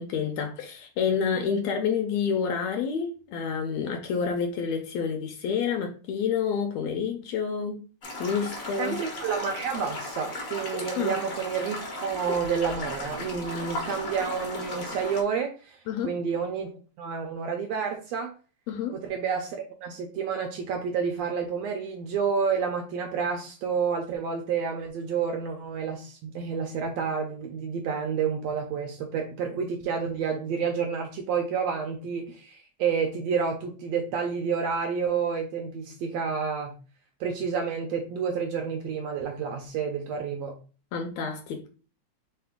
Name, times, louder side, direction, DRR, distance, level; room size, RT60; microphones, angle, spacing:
voice 1, 0.0-7.8 8.2-9.0 11.0-11.2 15.9-16.1 18.7-19.0 40.9-41.7, left 6 dB, 80° left, 4 dB, 1.7 m, -28 dB
sound 1, 8.0-15.2, left 1 dB, 55° left, 0.9 m, -36 dB
voice 2, 8.8-15.8 16.0-16.7 17.0-18.3 18.9-36.7 37.2-40.6, right 6 dB, 75° right, 3 dB, 1.6 m, -29 dB
4.5 x 3.4 x 3.5 m, 0.36 s
omnidirectional pair, 3.4 m